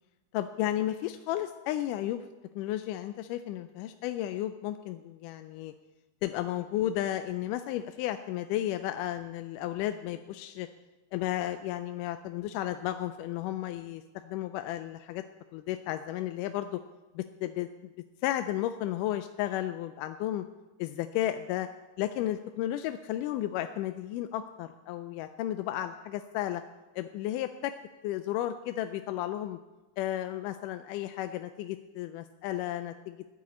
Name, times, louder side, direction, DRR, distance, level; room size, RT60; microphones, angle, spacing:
voice 1, 0.3-2.2 2.6-5.7 6.2-10.7 11.1-15.2 15.5-16.8 17.2-17.9 18.2-20.5 20.8-21.7 22.0-26.6 27.0-27.7 28.0-29.6 30.0-33.2, left 13 dB, 90° left, 9 dB, 2.1 m, -33 dB
12.0 x 7.5 x 8.4 m, 1.1 s
omnidirectional pair, 3.6 m